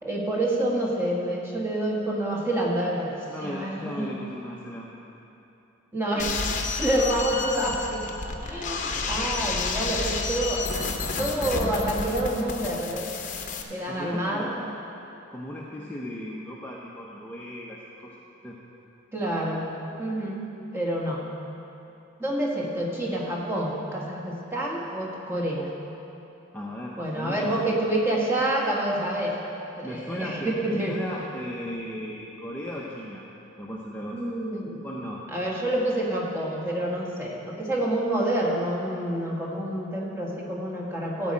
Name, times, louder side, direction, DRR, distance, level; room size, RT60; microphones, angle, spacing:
voice 1, 0.0-4.1 5.9-6.3 6.8-10.6 11.2-13.1 13.7-14.7 19.1-19.7 20.0-20.5 20.7-21.2 22.2-25.7 27.0-29.4 29.8-31.0 34.1-34.9 35.3-41.3, right 1 dB, 10° right, -4 dB, 1.6 m, -28 dB
voice 2, 3.3-4.9 13.9-14.5 15.3-18.1 18.4-18.6 26.5-27.7 29.8-33.2 33.6-34.3 34.8-35.2, equal, 10° left, -5 dB, 0.7 m, -36 dB
sound 1, 6.2-13.6, left 4 dB, 40° left, 0.8 m, -30 dB
13.5 x 5.3 x 8.6 m, 2.9 s
head